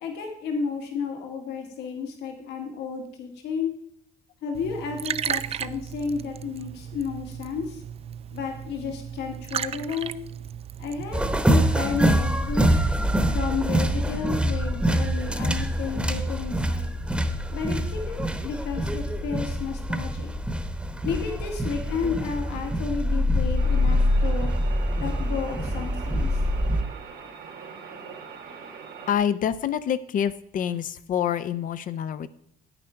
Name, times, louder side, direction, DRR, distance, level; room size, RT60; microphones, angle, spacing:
voice 1, 0.0-3.7 4.4-7.8 8.3-10.2 10.8-12.7 13.3-16.9 17.5-20.3 21.0-24.5 24.9-26.4, left 5 dB, 80° left, 3 dB, 2.0 m, -32 dB
Liquid, 4.5-12.6, right 9 dB, 35° right, 0.4 m, -35 dB
sound 1, 11.1-26.8, equal, 5° right, 1.0 m, -25 dB
sound 2, 23.6-29.2, right 6 dB, 85° right, 2.6 m, -41 dB
voice 2, 29.1-32.3, left 9 dB, 55° left, 13 dB, 0.6 m, -26 dB
9.3 x 9.0 x 4.5 m, 0.70 s
cardioid pair, 110°, 17 cm